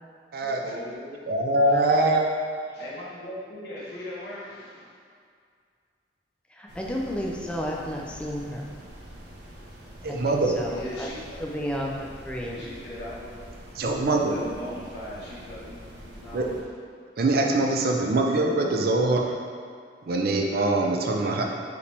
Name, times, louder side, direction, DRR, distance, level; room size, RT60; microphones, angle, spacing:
voice 1, 0.4-1.2 1.7-2.1 2.7-5.0 10.0-10.1 10.7-11.9 12.4-13.5 14.0-16.7 17.1-17.2, left 1 dB, 70° left, -8 dB, 1.3 m, -39 dB
voice 2, 1.3-2.3 10.0-10.5 13.7-14.4 16.3-16.5 17.2-19.4 20.1-21.4, right 2 dB, 60° right, 1 dB, 0.5 m, -23 dB
voice 3, 6.5-8.7 10.1-11.1 11.4-11.9 12.2-12.6, equal, 5° left, -2 dB, 0.4 m, -32 dB
sound 1, 6.7-16.6, equal, 90° right, 1.0 m, -45 dB
4.8 x 3.2 x 3.4 m, 2.2 s
head